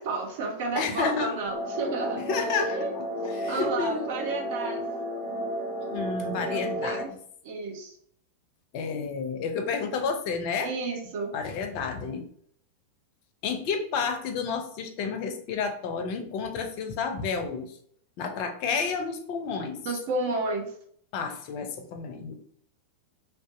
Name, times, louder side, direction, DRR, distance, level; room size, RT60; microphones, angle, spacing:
voice 1, 0.0-2.2 2.7-2.9 3.5-4.8 6.5-7.1 7.4-7.9 10.6-11.3 19.8-20.7, right 3 dB, 50° right, 2 dB, 0.5 m, -31 dB
voice 2, 0.7-1.4 2.2-4.0 5.9-7.2 8.7-10.7 11.3-12.3 13.4-17.8 18.2-19.8 21.1-22.3, left 5 dB, 45° left, 6 dB, 0.4 m, -31 dB
sound 1, 1.5-7.0, equal, 90° right, 1.0 m, -32 dB
2.5 x 2.2 x 2.4 m, 0.63 s
figure-of-eight pair, 90°, 0 cm